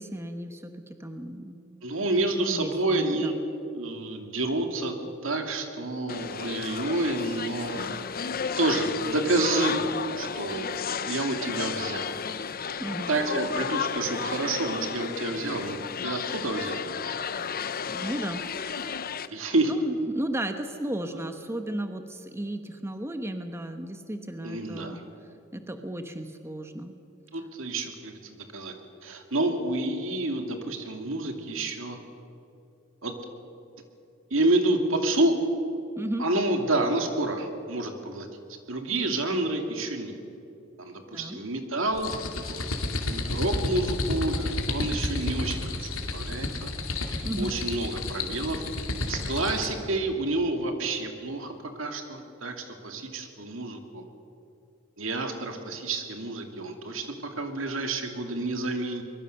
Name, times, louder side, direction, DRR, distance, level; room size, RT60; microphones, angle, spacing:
voice 1, 0.0-1.6 2.4-3.4 12.8-13.1 17.9-18.4 19.3-25.0 25.5-26.9 36.0-36.3 41.1-41.4 47.2-47.5, right 1 dB, 15° right, 7 dB, 1.0 m, -34 dB
voice 2, 1.8-3.3 3.7-4.9 5.2-7.9 8.6-9.9 10.2-10.7 11.0-12.2 13.1-16.9 19.3-19.7 24.4-25.0 27.3-28.7 29.0-32.0 33.0-33.1 34.3-35.3 36.2-38.3 38.7-40.2 40.8-42.1 42.5-46.7 47.4-48.6 49.1-54.0 55.0-59.0, right 2 dB, 70° right, 5 dB, 2.6 m, -29 dB
sound 1, 6.1-19.3, left 6 dB, 45° left, 0.7 m, -33 dB
sound 2, 41.9-49.8, left 2 dB, 90° left, 2.6 m, -31 dB
24.0 x 22.0 x 6.7 m, 2.7 s
head